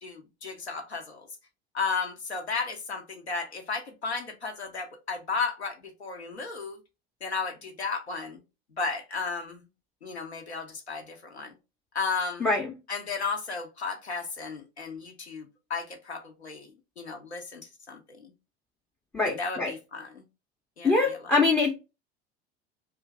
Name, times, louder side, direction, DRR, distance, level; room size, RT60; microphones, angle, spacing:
voice 1, 0.0-1.3 1.7-6.8 7.2-8.4 8.8-9.6 10.0-11.5 11.9-12.5 12.9-18.3 19.2-20.2 20.8-21.4, left 4 dB, 85° left, 0.5 m, -34 dB
voice 2, 19.1-19.7 20.8-21.7, left 3 dB, 5° left, 0.3 m, -24 dB
2.4 x 2.4 x 3.2 m
figure-of-eight pair, 75°, 32 cm